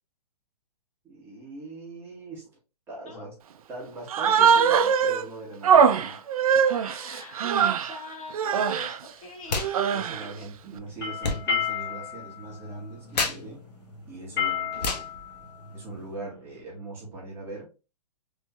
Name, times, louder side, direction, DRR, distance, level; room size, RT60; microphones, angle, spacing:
voice 1, 1.0-2.5 2.9-3.4 3.7-6.2 9.9-13.6 14.1-15.1 15.7-17.7, right 2 dB, 10° right, -5 dB, 1.2 m, -41 dB
Human voice, 4.1-5.2 5.6-8.0 8.3-9.0 9.5-10.3, right 7 dB, 60° right, 0.4 m, -22 dB
voice 2, 6.7-7.5 7.7-9.8, left 3 dB, 60° left, 2 dB, 1.4 m, -43 dB
sound 1, 9.4-9.7 10.0-16.2, left 3 dB, 85° left, 1.0 m, -34 dB
sound 2, 10.8-16.6, left 8 dB, 15° left, 1.2 m, -32 dB
3.5 x 3.0 x 2.7 m, 0.30 s
hypercardioid pair, 160°, 20 cm